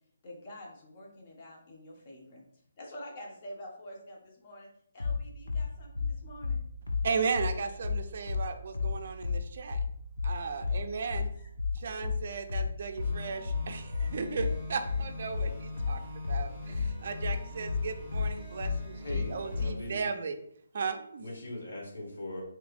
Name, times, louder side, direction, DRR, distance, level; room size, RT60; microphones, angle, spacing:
voice 1, 0.2-2.4 2.8-4.7 4.9-6.6 11.4-11.5, equal, 35° left, -1 dB, 0.9 m, -47 dB
sound 1, 5.0-19.8, left 5 dB, 85° left, 0.5 m, -31 dB
voice 2, 7.0-9.8 10.2-11.3 11.7-20.4 20.7-21.3, right 5 dB, 50° right, 7 dB, 0.4 m, -36 dB
sound 2, 13.0-19.7, left 2 dB, 5° left, 1.4 m, -44 dB
voice 3, 19.0-20.0 21.2-22.4, left 1 dB, 70° left, -2 dB, 1.1 m, -40 dB
3.2 x 2.9 x 2.5 m, 0.67 s
figure-of-eight pair, 150°, 0 cm